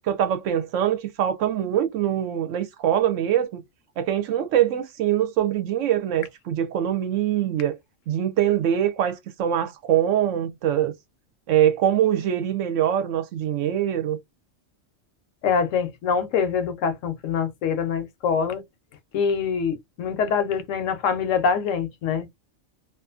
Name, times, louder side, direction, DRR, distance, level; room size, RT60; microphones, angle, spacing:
voice 1, 0.0-3.6 4.0-7.8 8.1-10.9 11.5-14.2, right 10 dB, 70° right, 0.9 m, -23 dB
voice 2, 15.4-18.6 19.1-22.3, left 6 dB, 75° left, 0.9 m, -24 dB
2.4 x 2.4 x 2.4 m
omnidirectional pair, 1.4 m